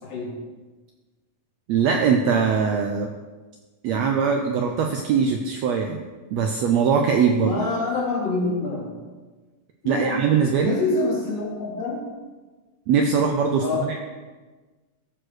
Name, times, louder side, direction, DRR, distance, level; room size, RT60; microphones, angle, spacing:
voice 1, 0.0-0.3 7.4-8.9 9.8-10.3 10.6-12.0 13.6-13.9, left 3 dB, 55° left, -3 dB, 3.1 m, -26 dB
voice 2, 1.7-3.1 3.8-6.0 6.3-7.5 9.8-10.8 12.9-14.0, right 6 dB, 75° right, 3 dB, 1.6 m, -21 dB
14.0 x 4.8 x 6.4 m, 1.3 s
omnidirectional pair, 3.7 m